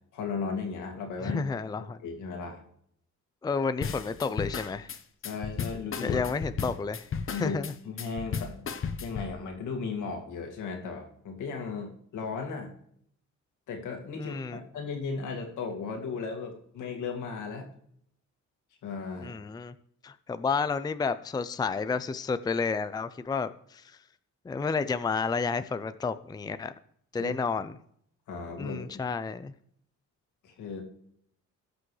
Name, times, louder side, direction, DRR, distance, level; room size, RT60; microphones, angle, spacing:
voice 1, 0.1-1.4 1.8-2.6 5.2-6.2 7.3-7.6 7.8-12.7 13.7-17.7 18.8-19.4 27.2-27.3 28.3-29.1 30.4-30.8, left 5 dB, 80° left, 2 dB, 2.1 m, -36 dB
voice 2, 1.2-2.0 3.4-4.9 6.0-7.1 7.3-7.7 14.2-14.6 19.2-19.7 20.0-23.8 24.5-26.7 27.1-27.7 28.6-29.5, left 5 dB, 15° left, 12 dB, 0.5 m, -31 dB
sound 1, 3.8-9.3, left 6 dB, 45° left, 1.0 m, -34 dB
16.5 x 6.1 x 3.2 m, 0.67 s
cardioid pair, 90°, 30 cm